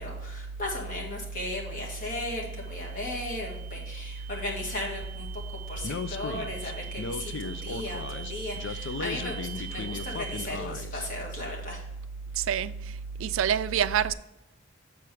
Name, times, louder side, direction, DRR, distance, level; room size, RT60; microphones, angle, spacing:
voice 1, 0.0-5.4 5.7-11.8, left 2 dB, 40° left, 1.8 m, -36 dB
sound 1, 1.6-10.5, right 10 dB, 35° right, 0.9 m, -45 dB
Speech, 5.8-11.0, left 5 dB, 65° left, 0.4 m, -36 dB
voice 2, 12.3-14.1, right 9 dB, 80° right, 0.3 m, -27 dB
7.1 x 4.5 x 4.9 m
head